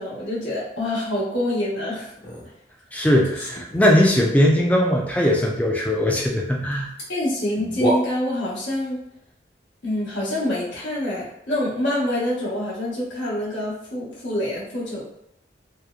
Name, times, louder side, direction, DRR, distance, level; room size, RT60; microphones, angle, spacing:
voice 1, 0.0-2.1 7.1-9.0 9.8-15.0, left 1 dB, 85° left, -7 dB, 1.1 m, -26 dB
sound 1, 2.2-2.5 3.1-4.1 6.7-6.8 7.0-7.1 7.5-8.5, right 1 dB, 60° left, 1.1 m, -29 dB
voice 2, 2.9-6.9, equal, 10° left, -1 dB, 0.3 m, -19 dB
2.9 x 2.0 x 2.3 m, 0.78 s
head